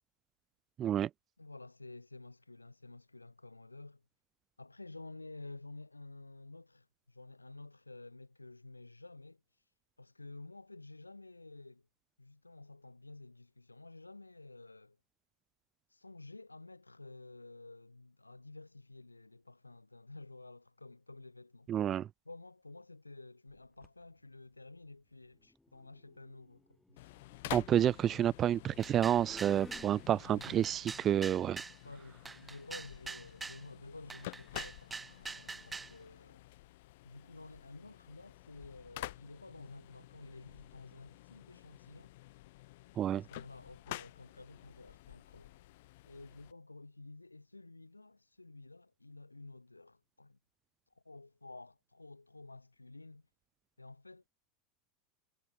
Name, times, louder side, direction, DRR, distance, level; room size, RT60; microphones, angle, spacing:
voice 1, 0.8-1.1 21.7-22.1 27.5-31.6 43.0-43.2, right 10 dB, 35° right, 0.3 m, -29 dB
voice 2, 1.4-4.0 4.6-9.4 10.0-11.9 12.2-15.0 15.9-21.7 22.2-27.1 30.3-30.7 31.1-31.3 31.8-36.4 37.0-42.1 43.1-45.7 46.0-50.4 50.9-53.2 53.8-54.3, left 2 dB, 90° left, 1.9 m, -52 dB
sound 1, 23.6-24.0 25.4-30.7, left 2 dB, 10° left, 3.7 m, -57 dB
sound 2, 27.0-46.5, left 19 dB, 60° left, 4.1 m, -50 dB
sound 3, 28.8-29.9 30.4-31.8 32.3-33.6 34.1-35.9, right 4 dB, 15° right, 3.4 m, -44 dB
figure-of-eight pair, 80°, 0 cm